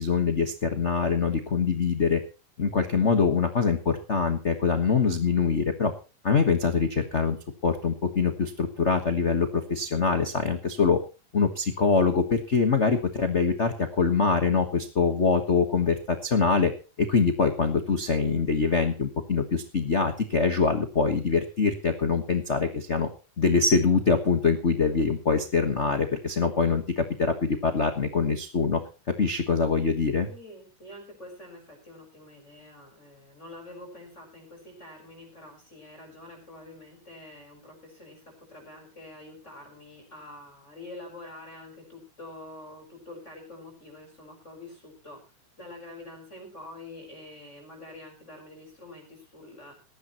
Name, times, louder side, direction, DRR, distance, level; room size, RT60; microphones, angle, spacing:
voice 1, 0.0-2.2 2.6-5.9 6.2-7.4 7.6-11.0 11.3-16.7 17.0-23.1 23.4-28.8 29.2-30.3, left 5 dB, 70° left, 6 dB, 0.6 m, -24 dB
voice 2, 30.2-38.2 38.5-45.2 45.6-49.7, left 2 dB, 20° left, 0 dB, 4.8 m, -46 dB
19.0 x 13.5 x 3.0 m, 0.31 s
omnidirectional pair, 3.6 m